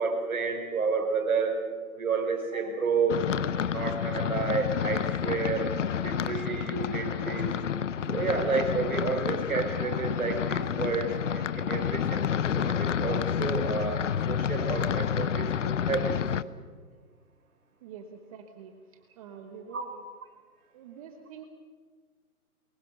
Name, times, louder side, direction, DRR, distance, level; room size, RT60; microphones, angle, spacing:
voice 1, 0.0-1.6 1.9-3.3 3.5-7.5 8.1-15.5 15.8-16.2 19.7-19.9, right 4 dB, 65° right, 4 dB, 5.6 m, -30 dB
sound 1, 3.1-16.4, left 8 dB, 55° left, 0.9 m, -29 dB
voice 2, 17.8-18.7 19.2-20.0 20.7-21.4, right 7 dB, 25° right, 6 dB, 1.2 m, -46 dB
24.0 x 22.0 x 6.8 m, 1.5 s
hypercardioid pair, 145°, 45 cm